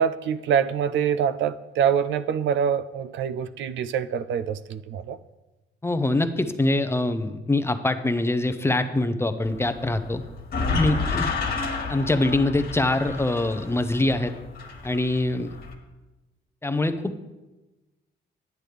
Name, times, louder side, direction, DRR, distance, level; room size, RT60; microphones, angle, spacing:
voice 1, 0.0-5.2 10.7-10.8, right 8 dB, 70° right, 13 dB, 0.4 m, -25 dB
voice 2, 5.8-10.2 10.7-11.3 11.9-14.3 14.8-15.5 16.6-17.2, left 2 dB, 10° left, 10 dB, 0.6 m, -24 dB
sound 1, 9.4-15.7, left 4 dB, 50° left, 1.7 m, -31 dB
9.3 x 8.9 x 3.4 m, 1.1 s
cardioid pair, 90°, 20 cm